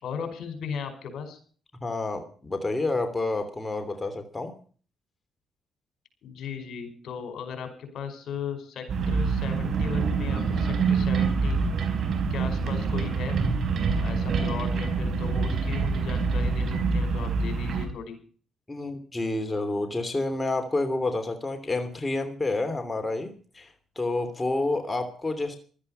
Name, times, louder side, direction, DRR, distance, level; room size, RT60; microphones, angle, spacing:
voice 1, 0.0-1.4 6.2-11.6 12.3-13.4 14.0-18.2, left 6 dB, 70° left, 8 dB, 5.1 m, -36 dB
voice 2, 1.8-4.5 18.7-23.7 24.0-25.6, left 2 dB, 20° left, 6 dB, 3.0 m, -29 dB
sound 1, 8.9-17.9, right 4 dB, 60° right, 4.5 m, -26 dB
16.0 x 13.0 x 5.6 m, 0.42 s
cardioid pair, 90°, 0 cm